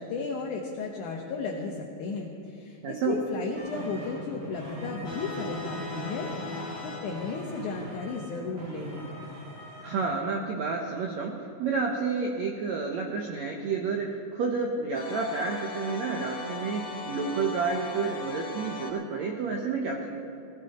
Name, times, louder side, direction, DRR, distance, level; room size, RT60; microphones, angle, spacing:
voice 1, 0.0-9.1, left 4 dB, 70° left, -1 dB, 2.1 m, -34 dB
voice 2, 2.8-3.2 9.8-20.2, right 4 dB, 85° right, 1 dB, 1.5 m, -30 dB
sound 1, 3.5-10.0, right 1 dB, 55° right, 6.0 m, -41 dB
sound 2, 5.0-8.2 14.9-18.9, left 4 dB, 45° left, 3.1 m, -39 dB
19.0 x 15.5 x 4.3 m, 2.7 s
omnidirectional pair, 4.6 m